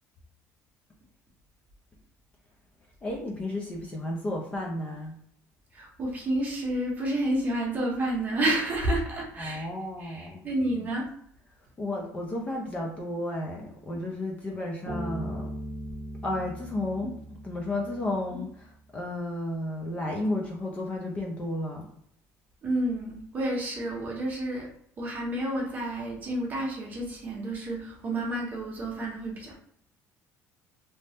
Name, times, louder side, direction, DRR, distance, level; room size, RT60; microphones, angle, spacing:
voice 1, 3.0-5.1 9.4-10.5 11.8-15.5 16.2-17.2 17.4-21.9, left 1 dB, 20° left, -1 dB, 0.4 m, -33 dB
voice 2, 5.7-9.7 10.0-11.0 22.6-24.7 25.0-29.5, right 1 dB, 25° right, -2 dB, 0.8 m, -30 dB
Bass guitar, 14.9-18.3, right 1 dB, 60° right, 0.6 m, -38 dB
2.7 x 2.0 x 3.3 m, 0.67 s
cardioid pair, 165°, 6 cm